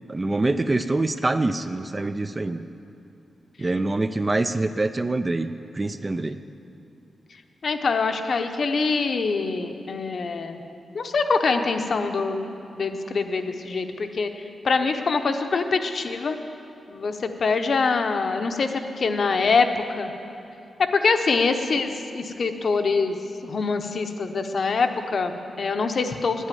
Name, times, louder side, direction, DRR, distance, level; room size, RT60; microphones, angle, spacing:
voice 1, 0.1-2.6 3.6-6.4, right 2 dB, 20° right, 10 dB, 0.3 m, -25 dB
voice 2, 7.6-10.6 10.9-16.4 16.9-20.1 20.8-23.2 23.4-26.5, left 4 dB, 45° left, 6 dB, 0.7 m, -24 dB
9.7 x 9.1 x 9.1 m, 2.7 s
wide cardioid pair, 165°, 0 cm